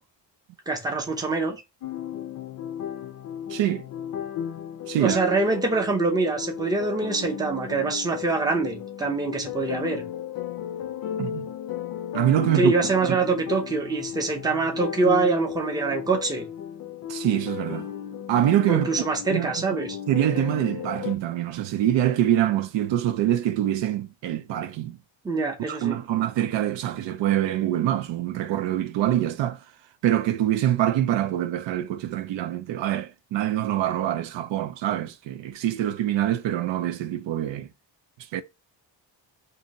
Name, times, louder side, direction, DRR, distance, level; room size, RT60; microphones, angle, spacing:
voice 1, 0.7-1.6 5.0-10.0 12.5-16.5 18.7-20.0 25.2-26.0, right 3 dB, 10° right, 0.6 m, -25 dB
sound 1, 1.8-21.2, left 10 dB, 50° left, 0.5 m, -34 dB
voice 2, 3.5-3.8 4.9-5.2 11.2-11.5 12.1-12.7 17.1-17.9 18.3-18.9 19.3-19.7 20.1-25.0 25.7-29.6 30.0-37.7 38.3-38.4, right 12 dB, 75° right, 0.5 m, -25 dB
2.7 x 2.7 x 3.9 m
wide cardioid pair, 170°, 45 cm